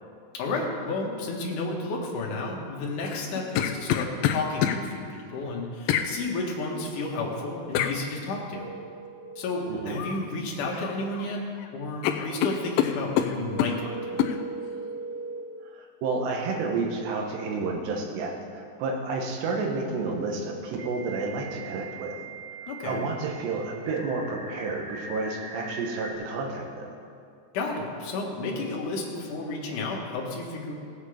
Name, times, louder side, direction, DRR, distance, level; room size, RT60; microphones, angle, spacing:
voice 1, 0.3-8.7 9.4-11.4 11.7-14.2 22.7-23.1 27.5-30.7, left 3 dB, 60° left, -1 dB, 2.6 m, -32 dB
sound 1, 3.0-4.8 5.9-6.1 7.8-8.0 10.0-10.2 10.6-11.3 11.6-11.7 12.0-13.8 14.2-14.4, left 10 dB, 85° left, 2.0 m, -26 dB
sound 2, 8.5-9.4 13.4-15.4 18.0-18.1 20.8-26.1, right 3 dB, 40° right, 2.6 m, -40 dB
voice 2, 9.7-10.0 15.7-22.2 22.6-27.0, right 3 dB, 80° right, 1 dB, 3.5 m, -30 dB
17.0 x 8.3 x 5.0 m, 2.4 s
omnidirectional pair, 4.9 m